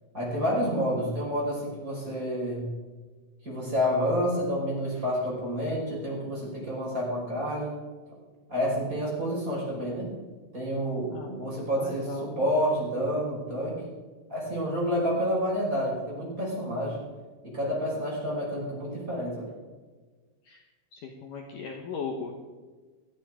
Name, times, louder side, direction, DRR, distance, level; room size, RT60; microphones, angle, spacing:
voice 1, 0.1-2.7 3.4-7.8 8.5-10.1 10.5-13.8 14.3-17.0 17.4-19.5, equal, 15° right, -5 dB, 5.2 m, -29 dB
voice 2, 11.5-12.5 20.5-20.6 20.9-22.3, left 5 dB, 70° left, 2 dB, 2.0 m, -38 dB
19.0 x 14.0 x 3.8 m, 1.4 s
omnidirectional pair, 5.6 m